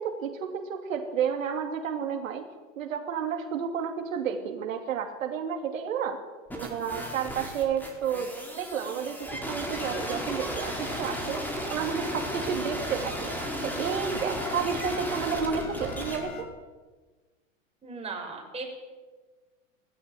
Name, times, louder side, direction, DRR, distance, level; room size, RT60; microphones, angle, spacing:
voice 1, 0.0-2.4 2.8-6.2 6.6-11.4 11.7-13.3 13.6-16.5, right 7 dB, 75° right, 4 dB, 2.8 m, -31 dB
sound 1, 6.5-16.2, equal, 5° left, 4.9 m, -35 dB
sound 2, 9.7-16.4, left 6 dB, 45° left, 5.6 m, -42 dB
voice 2, 17.8-18.6, right 4 dB, 15° right, 0 dB, 6.7 m, -37 dB
18.0 x 16.0 x 9.3 m, 1.3 s
hypercardioid pair, 125°, 40 cm